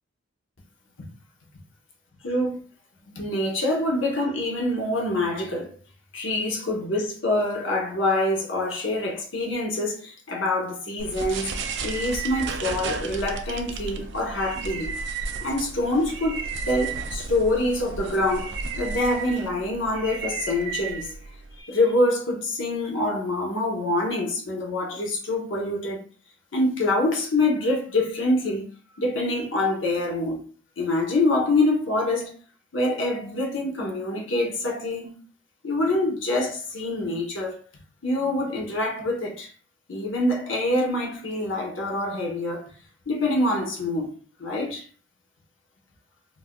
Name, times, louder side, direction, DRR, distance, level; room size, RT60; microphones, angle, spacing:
voice 1, 2.2-2.6 3.1-5.8 6.1-11.5 11.8-14.9 15.4-21.1 21.5-26.0 26.5-28.6 29.0-30.4 30.8-32.3 32.7-35.1 35.6-37.6 38.0-39.5 39.9-42.7 43.1-44.1 44.4-44.9, left 1 dB, 65° left, 0.8 m, -25 dB
sound 1, 11.0-21.6, right 4 dB, 55° right, 0.4 m, -33 dB
3.9 x 2.5 x 2.2 m
head